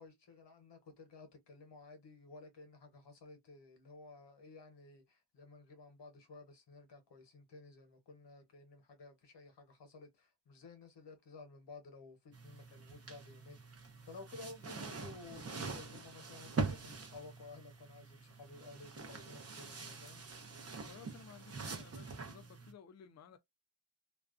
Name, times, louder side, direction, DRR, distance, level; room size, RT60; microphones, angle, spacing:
voice 1, 0.0-20.2, left 3 dB, 75° left, 1.0 m, -54 dB
sound 1, 12.3-22.7, right 4 dB, 35° right, 0.6 m, -44 dB
voice 2, 20.9-23.4, left 7 dB, 40° left, 0.4 m, -56 dB
2.4 x 2.1 x 2.4 m
wide cardioid pair, 105°, 42 cm